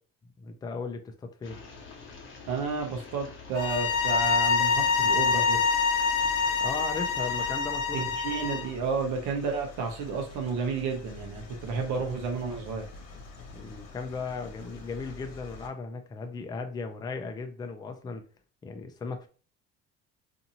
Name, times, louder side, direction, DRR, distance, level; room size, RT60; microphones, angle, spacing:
voice 1, 0.4-1.6 6.6-8.1 13.5-18.2 18.6-19.3, left 4 dB, 15° left, 5 dB, 0.3 m, -36 dB
sound 1, 1.4-7.5, left 4 dB, 40° left, 0.9 m, -46 dB
voice 2, 2.5-5.6 7.9-12.9, right 4 dB, 85° right, 3 dB, 0.8 m, -31 dB
sound 2, 3.5-8.7, left 5 dB, 85° left, 0.5 m, -26 dB
sound 3, 3.6-15.7, left 3 dB, 65° left, 1.0 m, -47 dB
2.6 x 2.6 x 2.8 m, 0.39 s
cardioid pair, 130°, 29 cm